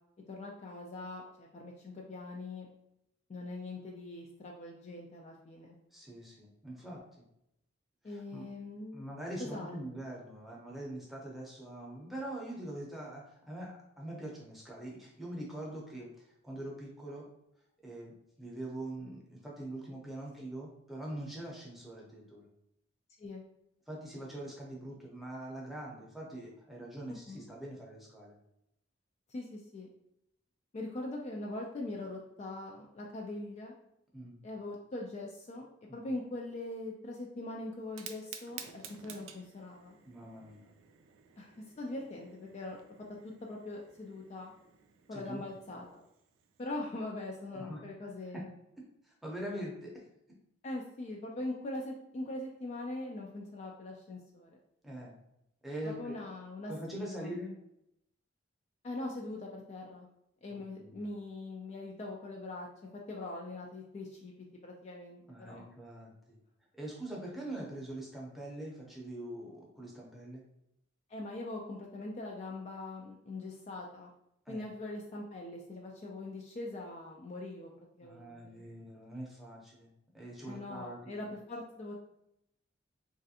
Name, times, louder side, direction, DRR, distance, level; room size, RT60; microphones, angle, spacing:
voice 1, 0.3-2.7 3.3-5.8 8.0-9.0 9.4-9.8 23.2-23.4 27.1-27.4 29.3-29.9 30.7-33.7 34.4-35.6 35.9-40.0 41.4-42.8 43.2-44.5 45.1-45.8 46.6-48.5 50.6-54.6 55.8-57.4 58.8-60.1 60.4-62.7 62.9-65.2 65.5-65.6 71.1-74.1 74.5-78.6 80.5-81.9, left 2 dB, 35° left, -1 dB, 0.3 m, -42 dB
voice 2, 5.9-7.0 8.1-8.4 8.9-16.1 16.4-17.3 17.8-18.1 18.4-22.4 23.9-28.4 34.1-34.4 35.9-36.1 40.1-40.7 45.1-45.4 47.6-47.8 48.3-48.4 49.0-49.9 54.8-55.2 55.6-56.1 56.7-57.5 60.5-61.0 65.3-66.4 66.8-70.4 74.5-74.7 78.0-81.3, right 1 dB, ahead, -4 dB, 0.6 m, -43 dB
Fire, 37.8-46.7, right 8 dB, 90° right, 0.4 m, -53 dB
3.1 x 2.4 x 2.7 m, 0.79 s
head